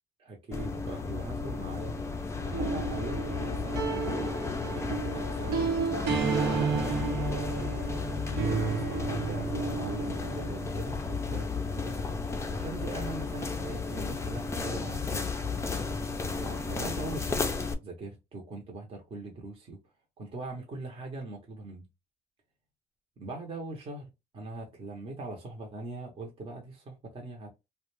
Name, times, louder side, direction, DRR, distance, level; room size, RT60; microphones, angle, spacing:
voice 1, 0.2-2.0 2.3-4.2 4.7-5.7 6.4-7.7 8.4-12.1 12.5-15.3 16.4-19.8 20.2-21.9 23.2-27.5, right 2 dB, 35° right, 0.8 m, -41 dB
sound 1, 0.5-17.7, left 4 dB, 15° left, 0.4 m, -33 dB
sound 2, 2.5-10.6, right 5 dB, 90° right, 0.8 m, -32 dB
2.4 x 2.1 x 3.1 m
cardioid pair, 110°, 17 cm